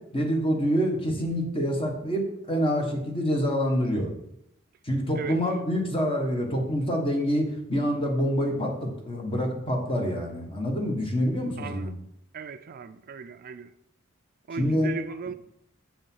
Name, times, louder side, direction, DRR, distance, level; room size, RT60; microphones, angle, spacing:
voice 1, 0.1-4.1 4.8-11.9 14.6-14.9, equal, 25° left, 1.5 m, -26 dB
voice 2, 11.6-11.9 12.3-13.7 14.5-15.3, right 5 dB, 45° right, 0.3 m, -37 dB
7.2 x 5.3 x 5.5 m
head